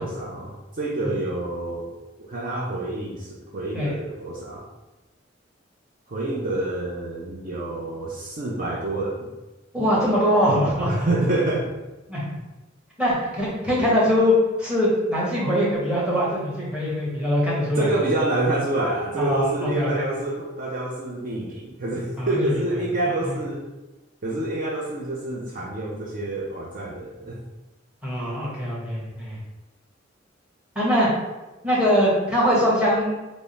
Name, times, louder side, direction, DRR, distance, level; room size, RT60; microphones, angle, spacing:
voice 1, 0.0-4.6 6.1-9.3 10.8-11.7 17.8-23.7 24.2-27.4, right 2 dB, 45° right, -3 dB, 0.5 m, -27 dB
voice 2, 9.7-11.1 12.1-12.3 13.0-17.9 19.2-20.1 22.2-22.5 23.2-23.4 28.0-29.4 30.7-31.1 31.6-33.1, equal, 5° right, -6 dB, 1.0 m, -22 dB
3.5 x 2.0 x 3.9 m, 1.1 s
head